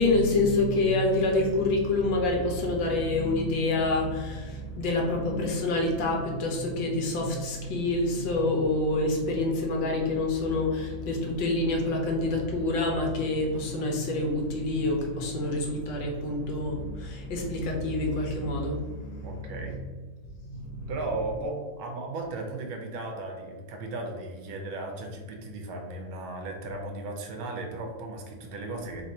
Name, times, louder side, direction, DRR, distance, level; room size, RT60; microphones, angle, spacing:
voice 1, 0.0-19.8 20.5-20.9, left 2 dB, 70° left, 0 dB, 1.4 m, -27 dB
voice 2, 19.2-19.8 20.9-29.0, right 2 dB, 85° right, 3 dB, 1.6 m, -36 dB
3.8 x 2.7 x 4.1 m, 1.4 s
omnidirectional pair, 2.2 m